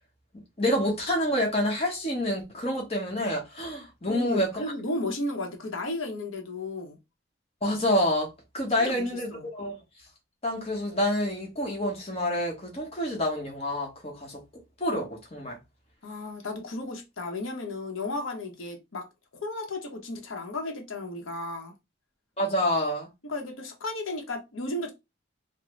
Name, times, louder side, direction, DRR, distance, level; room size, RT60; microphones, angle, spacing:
voice 1, 0.6-4.6 7.6-9.8 10.4-14.4 14.8-15.6 22.4-23.1, left 1 dB, 30° left, 1.0 m, -28 dB
voice 2, 4.1-7.0 8.8-9.5 16.0-19.1 19.3-21.7 23.2-24.9, left 2 dB, 85° left, 0.8 m, -34 dB
3.8 x 2.1 x 3.1 m
head